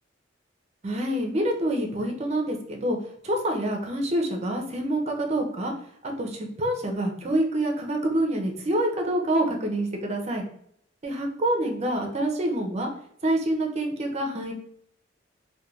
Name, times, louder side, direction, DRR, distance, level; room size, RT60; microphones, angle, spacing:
voice 1, 0.8-3.0 3.2-5.7 6.0-10.4 11.0-12.9 13.2-14.5, right 1 dB, 35° right, 2 dB, 0.5 m, -26 dB
3.2 x 2.2 x 2.3 m, 0.68 s
head